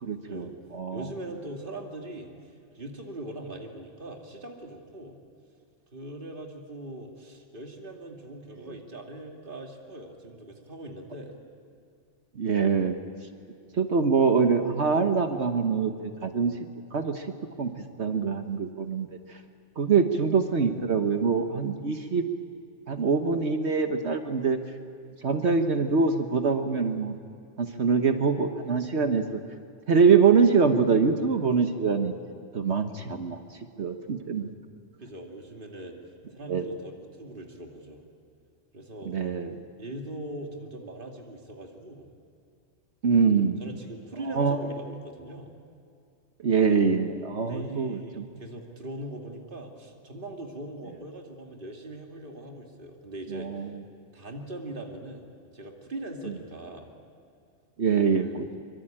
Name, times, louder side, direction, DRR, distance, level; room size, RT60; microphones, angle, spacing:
voice 1, 0.0-1.1 12.4-13.0 13.7-16.5 16.9-17.3 17.6-17.7 18.0-19.1 19.8-22.2 22.9-24.6 25.2-27.2 27.6-29.4 29.9-32.1 32.5-33.4 33.8-34.5 36.5-36.7 39.0-39.5 43.0-43.6 44.3-44.6 46.4-48.2 53.3-53.7 57.8-58.5, right 5 dB, 60° right, 6 dB, 1.5 m, -24 dB
voice 2, 0.9-2.3 2.7-5.2 5.9-11.4 35.0-36.0 36.3-38.0 38.7-39.2 39.8-42.1 43.3-45.5 47.4-53.5 54.1-56.9 58.2-58.4, right 1 dB, 45° right, 2 dB, 2.6 m, -41 dB
24.5 x 24.5 x 8.8 m, 2.4 s
omnidirectional pair, 1.3 m